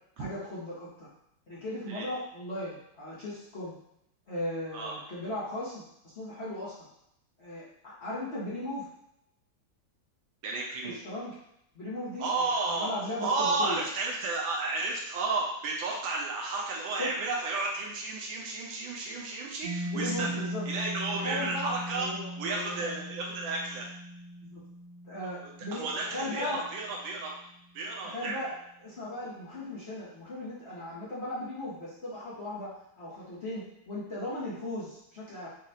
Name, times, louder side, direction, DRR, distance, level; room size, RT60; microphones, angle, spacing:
voice 1, 0.2-1.1 1.5-3.8 4.3-5.8 6.1-6.7 7.4-8.9 10.8-11.3 11.7-12.3 12.7-13.8 17.0-17.1 19.8-20.7 21.1-23.0 24.4-24.6 25.0-26.6 28.0-28.5 28.8-35.5, left 1 dB, 40° left, -9 dB, 1.1 m, -37 dB
voice 2, 10.4-11.0 12.2-12.9 13.2-22.1 22.4-23.9 25.4-27.3 27.7-28.3, right 3 dB, 80° right, -1 dB, 1.5 m, -32 dB
Mallet percussion, 19.6-27.1, equal, 80° left, 2.1 m, -39 dB
5.3 x 2.4 x 2.8 m, 0.76 s
omnidirectional pair, 2.2 m